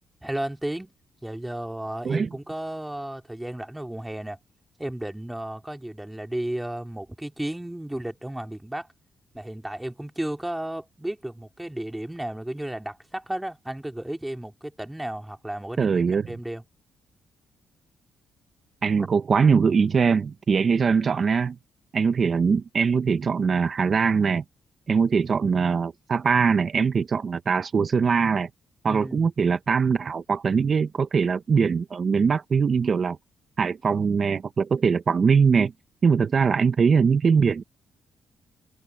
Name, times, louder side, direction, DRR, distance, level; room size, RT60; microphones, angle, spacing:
voice 1, 0.2-0.9 1.2-4.4 4.8-8.9 9.3-16.6 19.0-19.1 28.9-29.3, right 1 dB, 10° right, 3.1 m, -33 dB
voice 2, 15.8-16.3 18.8-21.5 21.9-24.4 24.9-28.5 28.8-33.2 33.6-35.7 36.0-37.6, right 5 dB, 45° right, 1.0 m, -22 dB
open air
cardioid pair, 85°, 0 cm